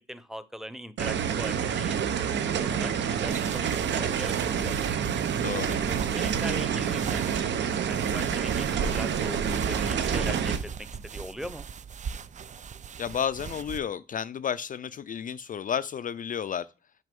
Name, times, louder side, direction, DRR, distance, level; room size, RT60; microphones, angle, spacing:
voice 1, 0.1-4.8 5.7-11.7, equal, ahead, 0.8 m, -41 dB
sound 1, 1.0-10.6, right 7 dB, 65° right, 1.0 m, -28 dB
sound 2, 3.3-13.8, right 6 dB, 35° right, 0.5 m, -38 dB
voice 2, 5.4-5.7 13.0-16.7, left 8 dB, 45° left, 0.4 m, -31 dB
6.3 x 5.3 x 5.3 m
cardioid pair, 90°, 20 cm